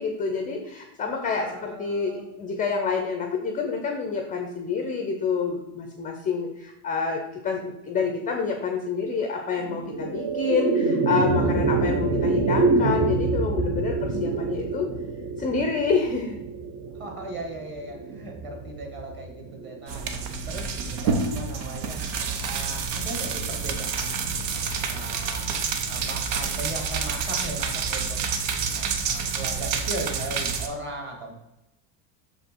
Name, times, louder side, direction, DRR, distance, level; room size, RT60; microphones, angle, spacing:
voice 1, 0.0-14.9 15.4-16.4, left 5 dB, 15° left, 3 dB, 0.5 m, -28 dB
voice 2, 1.3-2.3 17.0-20.0 20.5-22.0 22.4-25.5 25.9-28.2 28.7-31.4, right 2 dB, 25° right, 1 dB, 1.7 m, -38 dB
sound 1, 9.6-20.1, right 3 dB, 40° right, 0.8 m, -26 dB
sound 2, 19.9-30.7, right 5 dB, 75° right, 1.1 m, -28 dB
6.4 x 5.1 x 4.5 m, 0.92 s
cardioid pair, 155°, 48 cm